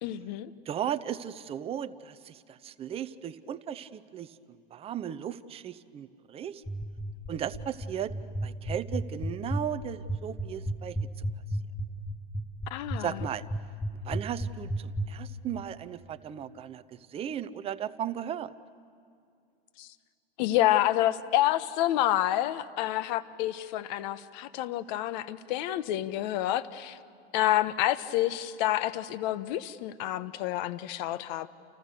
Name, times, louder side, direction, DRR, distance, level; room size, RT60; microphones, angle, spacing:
voice 1, 0.0-0.5 12.7-13.2 19.8-19.9 20.4-27.0 27.3-31.5, left 14 dB, 45° left, 13 dB, 1.1 m, -28 dB
voice 2, 0.7-4.3 4.7-6.6 7.3-8.1 8.4-11.2 13.0-13.4 14.0-18.5, right 9 dB, 20° right, 12 dB, 0.7 m, -36 dB
sound 1, 6.7-15.1, right 1 dB, 5° left, 1.1 m, -31 dB
29.5 x 29.5 x 6.8 m, 2.4 s
hypercardioid pair, 140°, 31 cm